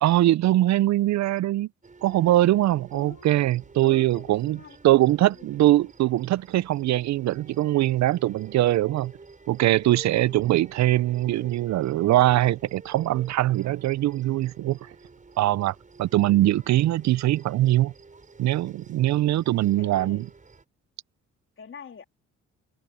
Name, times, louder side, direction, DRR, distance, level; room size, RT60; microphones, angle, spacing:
voice 1, 0.0-1.7 2.0-4.6 4.8-9.1 9.5-14.8 15.4-17.9 18.4-20.2, right 15 dB, 65° right, 0.5 m, -22 dB
sound 1, 1.8-20.6, right 4 dB, 25° right, 5.9 m, -49 dB
voice 2, 2.9-3.3 3.8-5.7 10.1-10.4 19.8-20.2 21.6-22.0, left 6 dB, 45° left, 3.3 m, -46 dB
cardioid pair, 90°, 30 cm